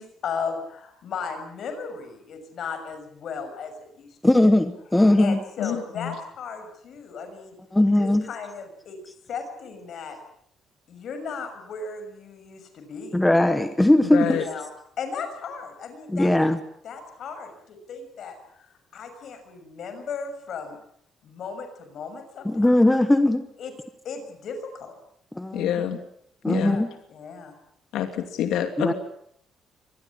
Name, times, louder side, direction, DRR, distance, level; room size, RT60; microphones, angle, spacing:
voice 1, 0.0-4.5 5.2-7.6 8.0-9.0 9.3-10.2 10.9-13.2 14.2-14.7 15.0-16.3 16.8-20.8 21.2-22.8 23.6-23.7 24.0-25.0 26.5-26.8 27.1-27.5, left 5 dB, 45° left, 8 dB, 6.5 m, -36 dB
voice 2, 4.2-5.4 7.7-8.2 13.1-14.4 16.1-16.6 22.4-23.4 25.3-25.7 26.4-26.9 28.8-28.9, left 1 dB, 5° left, 9 dB, 1.1 m, -19 dB
voice 3, 5.6-6.1 14.1-14.4 25.5-26.0 26.5-26.8 27.9-28.9, left 10 dB, 80° left, 6 dB, 2.7 m, -27 dB
25.0 x 20.5 x 8.6 m, 0.69 s
cardioid pair, 180°, 0 cm